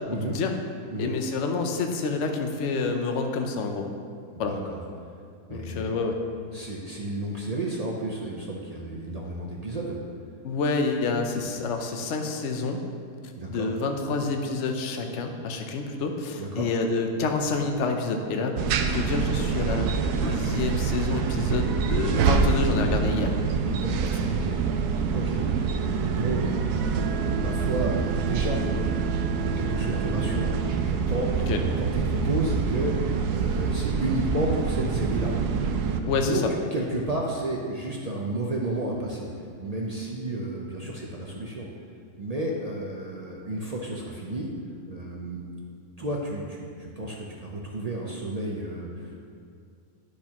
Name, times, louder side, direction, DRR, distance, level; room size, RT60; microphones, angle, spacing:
voice 1, 1.0-3.9 4.4-4.5 5.5-6.2 10.4-12.8 13.5-19.9 20.2-23.3 31.5-31.6 36.1-36.4, left 4 dB, 60° left, 4 dB, 0.9 m, -28 dB
voice 2, 4.3-4.8 5.5-5.9 6.5-10.0 13.4-13.7 16.4-16.7 23.7-24.6 24.9-26.4 26.7-35.3 35.7-36.4 36.7-39.3 39.6-41.7 42.2-44.5 44.9-45.4 46.0-49.3, right 2 dB, 50° right, -2 dB, 0.4 m, -32 dB
sound 1, 18.6-36.0, right 5 dB, 80° right, 1.1 m, -26 dB
10.5 x 6.5 x 2.9 m, 2.3 s
omnidirectional pair, 1.7 m